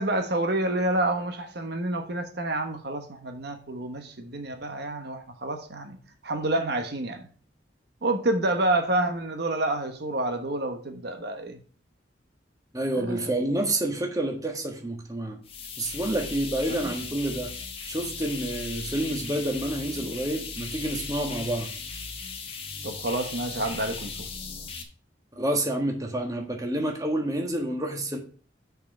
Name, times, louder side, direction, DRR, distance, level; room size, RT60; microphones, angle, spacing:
voice 1, 0.0-6.0 6.2-7.3 8.0-11.6 12.9-13.3 16.7-16.9 22.8-24.3, right 2 dB, 60° right, 1.2 m, -28 dB
voice 2, 12.7-15.4 15.8-17.5 17.9-21.7 25.4-28.2, right 1 dB, 20° right, 1.5 m, -28 dB
sound 1, 15.4-24.8, left 4 dB, 30° left, 1.3 m, -37 dB
6.5 x 5.5 x 6.4 m
head